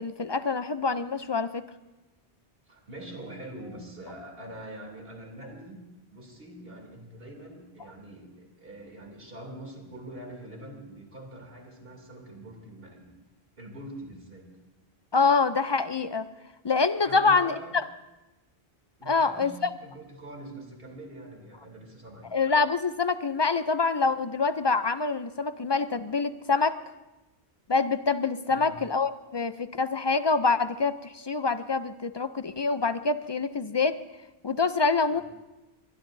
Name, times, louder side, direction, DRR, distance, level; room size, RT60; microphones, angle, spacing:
voice 1, 0.0-1.6 15.1-16.3 16.6-17.5 19.1-19.5 22.3-26.8 27.7-34.0 34.4-35.2, left 4 dB, 35° left, 12 dB, 0.4 m, -25 dB
voice 2, 2.7-5.8 6.1-13.1 13.6-14.5 17.0-17.8 19.0-22.3 28.5-28.8 35.1-35.2, right 1 dB, 65° right, 1 dB, 3.2 m, -44 dB
23.0 x 21.0 x 2.7 m, 1.0 s
omnidirectional pair, 1.0 m